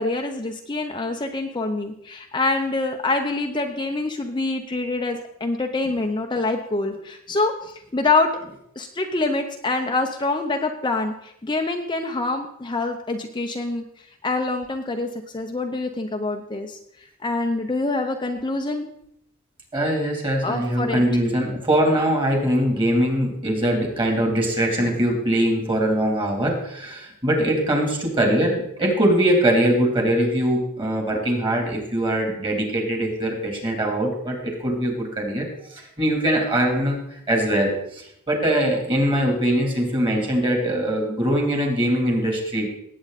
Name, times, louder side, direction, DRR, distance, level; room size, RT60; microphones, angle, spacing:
voice 1, 0.0-8.4 8.8-13.8 14.2-16.8 17.2-18.9 20.4-21.0, left 3 dB, 20° left, 3 dB, 0.8 m, -25 dB
voice 2, 19.7-42.7, right 1 dB, 25° right, 1 dB, 3.4 m, -22 dB
18.5 x 8.6 x 4.2 m, 0.74 s
head